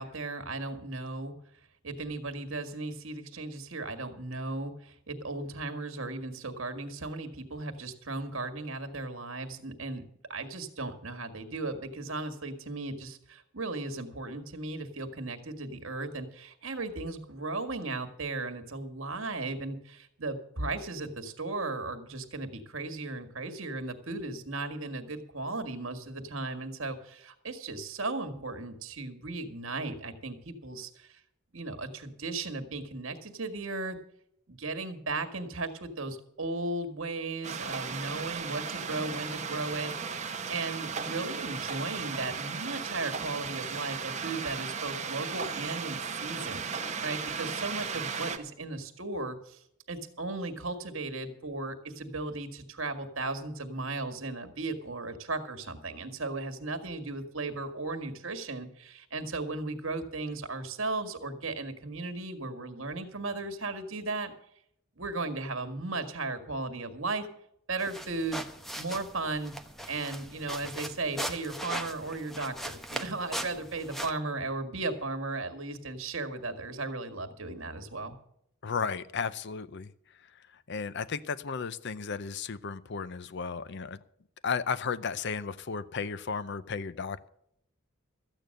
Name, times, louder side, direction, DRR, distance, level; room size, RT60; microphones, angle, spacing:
voice 1, 0.0-1.3 1.8-10.0 10.3-31.2 31.5-34.0 34.5-49.6 49.9-64.3 65.0-67.3 67.7-68.4 68.8-69.5 69.9-78.1, right 3 dB, 65° right, 8 dB, 1.9 m, -36 dB
sound 1, 37.4-48.4, right 5 dB, 35° right, 1.2 m, -36 dB
sound 2, 67.8-74.1, right 1 dB, ahead, 0.9 m, -39 dB
voice 2, 78.6-79.9 80.7-84.0 84.4-87.3, left 5 dB, 55° left, 16 dB, 0.6 m, -34 dB
14.0 x 9.0 x 6.6 m, 0.72 s
head